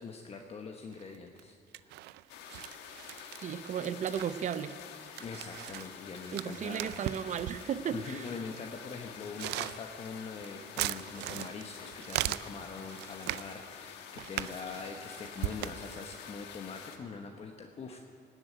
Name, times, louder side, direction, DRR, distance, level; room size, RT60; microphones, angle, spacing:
voice 1, 0.0-2.0 5.2-6.9 7.9-18.0, left 4 dB, 35° left, 2 dB, 1.1 m, -43 dB
sound 1, 0.9-1.4 1.7-7.8 8.5-8.6 9.2-13.5 14.2-16.2, right 15 dB, 85° right, 0.4 m, -39 dB
sound 2, 2.3-17.0, left 8 dB, 85° left, 1.3 m, -48 dB
voice 2, 3.4-4.7 6.3-8.3, right 8 dB, 45° right, 13 dB, 0.7 m, -35 dB
18.0 x 7.9 x 9.2 m, 2.4 s
cardioid pair, 110°, 17 cm